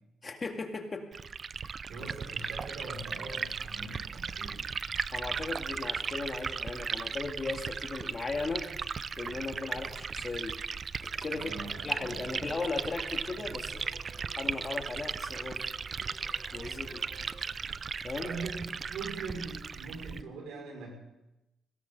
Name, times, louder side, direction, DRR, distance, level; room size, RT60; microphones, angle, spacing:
voice 1, 0.2-1.0 5.1-8.7 9.2-10.5 11.0-11.6 11.8-13.9 14.4-15.6 16.5-17.0 18.0-18.3, left 3 dB, 35° left, 4 dB, 2.0 m, -37 dB
Liquid, 1.1-20.2, right 5 dB, 45° right, 0.4 m, -37 dB
voice 2, 1.9-4.6 11.3-12.6 16.6-16.9 18.2-20.9, right 3 dB, 80° right, 0 dB, 5.5 m, -42 dB
sound 1, 10.9-17.4, right 1 dB, 25° right, 3.6 m, -56 dB
Human voice / Acoustic guitar, 11.5-19.5, equal, ahead, 4.3 m, -60 dB
18.0 x 17.5 x 3.9 m, 0.91 s
cardioid pair, 80°, 0 cm